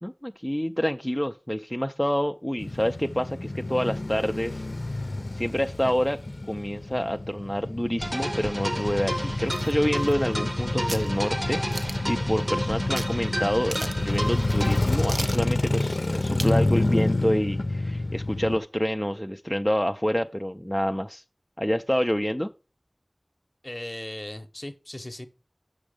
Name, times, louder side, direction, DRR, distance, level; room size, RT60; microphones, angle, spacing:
voice 1, 0.0-4.6 5.3-6.2 6.5-21.2 21.6-22.5, equal, 10° left, 0.4 m, -27 dB
Male speech man speaking / Motorcycle / Idling, 2.6-18.6, left 2 dB, 80° left, 0.5 m, -28 dB
sound 1, 8.0-14.8, equal, 30° right, 0.9 m, -32 dB
sound 2, 9.5-10.5 10.9-11.1 11.7-12.1 13.0-13.1 13.4-13.5 13.7-14.1 14.5-14.6 15.1-15.5 16.4-16.6 17.0-17.1, right 2 dB, 85° right, 0.5 m, -36 dB
voice 2, 23.6-25.3, left 1 dB, 40° left, 0.8 m, -37 dB
6.2 x 6.1 x 5.0 m
wide cardioid pair, 40°, 0 cm